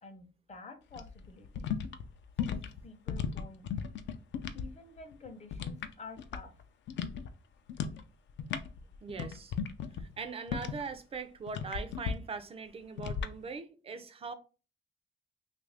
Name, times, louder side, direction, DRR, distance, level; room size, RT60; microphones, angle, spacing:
voice 1, 0.0-1.8 2.4-3.7 4.5-6.6, left 4 dB, 35° left, 0.7 m, -50 dB
sound 1, 0.9-4.7 5.0-6.6 6.9-7.3 7.7-8.0 8.3-10.9 11.5-12.1 13.0-13.3, left 7 dB, 70° left, 0.4 m, -36 dB
voice 2, 9.0-9.6 10.0-14.3, right 5 dB, 30° right, 0.4 m, -41 dB
3.0 x 2.5 x 3.3 m
cardioid pair, 115°, 19 cm